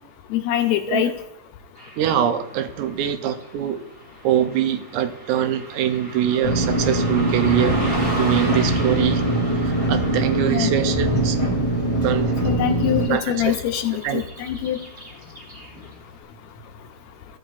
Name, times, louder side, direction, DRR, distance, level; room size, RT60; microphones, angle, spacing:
voice 1, 0.3-1.1 10.5-10.7 12.4-14.8, left 10 dB, 75° left, 6 dB, 1.8 m, -23 dB
Car passing by / Traffic noise roadway noise, 1.7-16.0, right 1 dB, 30° right, 1.1 m, -36 dB
voice 2, 2.0-3.8 4.2-7.8 8.2-9.2 9.7-11.4 12.0-12.3 13.1-13.6 14.0-14.2, right 10 dB, 85° right, 8 dB, 2.2 m, -23 dB
sound 1, 6.4-13.1, right 1 dB, 20° left, 1.8 m, -22 dB
14.0 x 7.0 x 2.4 m, 0.88 s
omnidirectional pair, 3.5 m